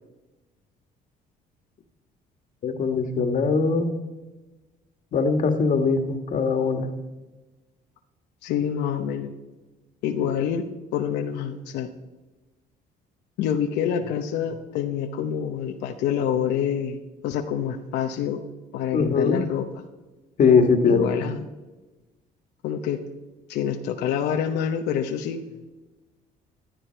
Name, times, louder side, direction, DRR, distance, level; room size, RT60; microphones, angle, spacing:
voice 1, 2.6-3.9 5.1-6.9 18.9-19.4 20.4-21.1, left 5 dB, 50° left, 7 dB, 1.7 m, -21 dB
voice 2, 8.4-9.3 10.0-11.9 13.4-18.4 18.7-19.7 20.9-21.5 22.6-23.1 23.5-25.7, left 8 dB, 85° left, 5 dB, 0.9 m, -27 dB
15.0 x 12.0 x 4.5 m, 1.2 s
cardioid pair, 110°, 17 cm